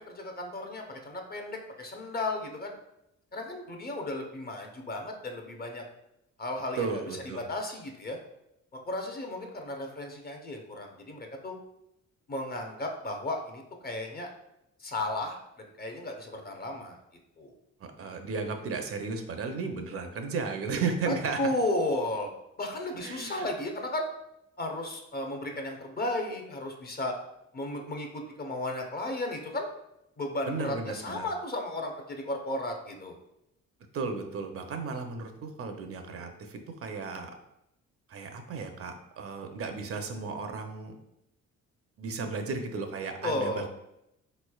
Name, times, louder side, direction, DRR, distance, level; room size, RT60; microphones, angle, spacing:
voice 1, 0.1-2.7 3.3-5.8 6.4-7.0 7.3-8.2 8.7-11.6 12.3-14.3 14.8-15.4 15.8-17.0 17.4-17.5 21.1-22.3 22.6-24.0 24.6-27.1 27.5-29.7 30.2-33.2 43.2-43.7, left 1 dB, 30° left, 3 dB, 0.6 m, -34 dB
voice 2, 6.8-7.5 17.8-21.4 23.0-23.5 30.5-31.3 33.9-37.3 38.1-40.9 42.0-43.7, right 4 dB, 50° right, 5 dB, 0.5 m, -34 dB
3.9 x 3.1 x 2.3 m, 0.83 s
cardioid pair, 90°, 30 cm